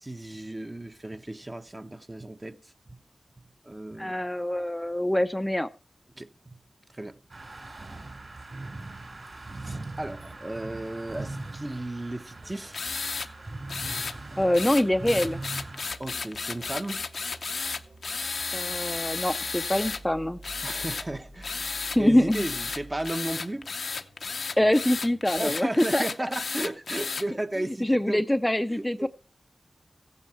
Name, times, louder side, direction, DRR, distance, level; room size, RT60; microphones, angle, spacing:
voice 1, 0.0-2.6 2.9-3.0 3.6-4.1 6.1-6.6 6.9-7.2 9.6-12.8 16.0-17.0 20.6-23.7 25.4-28.2 28.7-29.1, right 1 dB, 25° right, 0.8 m, -35 dB
voice 2, 4.0-5.7 14.4-15.4 18.5-20.4 22.0-22.5 24.6-26.0 27.8-29.1, left 1 dB, 10° left, 0.5 m, -24 dB
sound 1, 7.3-15.9, right 2 dB, 50° right, 5.8 m, -40 dB
sound 2, 9.6-25.4, right 2 dB, 80° right, 5.9 m, -50 dB
sound 3, 12.7-13.3 13.7-14.2 14.5-20.0 20.4-21.1 21.4-22.0 22.3-27.2, left 4 dB, 80° left, 0.7 m, -33 dB
15.5 x 9.6 x 4.4 m
wide cardioid pair, 60°, 0 cm